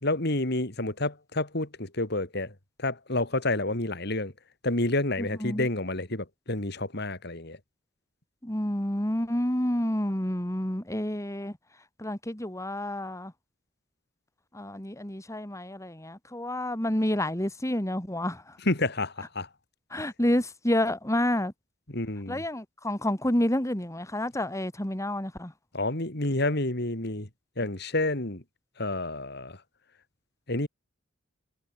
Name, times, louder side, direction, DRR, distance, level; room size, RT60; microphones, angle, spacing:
voice 1, 0.0-2.5 2.8-4.3 4.6-7.6 18.7-19.5 21.9-22.4 25.7-27.3 27.6-28.4 28.8-29.6 30.5-30.7, left 2 dB, 60° left, 3.5 m, -29 dB
voice 2, 5.2-5.7 8.4-11.6 12.0-13.3 14.5-18.6 19.9-21.5 22.3-25.5, left 1 dB, 15° left, 2.5 m, -29 dB
head